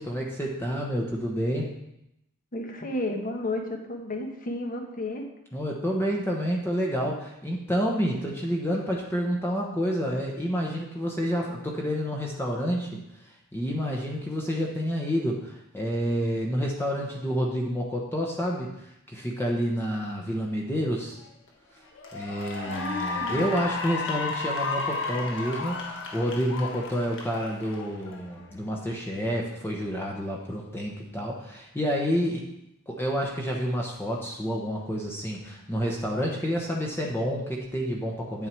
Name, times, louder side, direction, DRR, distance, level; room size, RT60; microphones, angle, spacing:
voice 1, 0.0-1.7 5.5-13.0 13.5-18.7 19.1-21.2 22.1-32.4 32.9-38.5, equal, 10° left, -1 dB, 1.0 m, -29 dB
voice 2, 2.5-5.2 22.7-23.6, left 2 dB, 40° left, 4 dB, 1.2 m, -32 dB
Cheering / Applause, 21.2-21.5 21.9-28.5, left 3 dB, 60° left, 1.4 m, -33 dB
8.8 x 7.3 x 4.6 m, 0.83 s
head